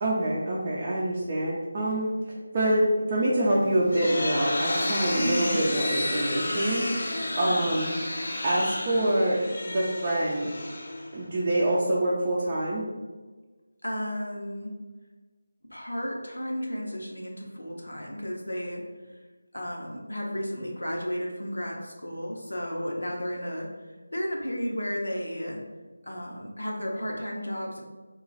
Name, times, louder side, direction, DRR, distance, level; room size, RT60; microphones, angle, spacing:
voice 1, 0.0-2.1 2.5-6.9 7.4-7.9 8.4-10.5 11.1-12.8, right 1 dB, 30° right, -7 dB, 0.5 m, -26 dB
sound 1, 3.6-11.4, left 1 dB, 50° left, 0.6 m, -31 dB
voice 2, 5.1-5.6 7.3-7.7 13.8-14.7 15.7-18.8 19.5-25.6 26.0-27.8, equal, 80° left, -1 dB, 0.8 m, -33 dB
3.0 x 2.4 x 3.9 m, 1.3 s
figure-of-eight pair, 165°, 0 cm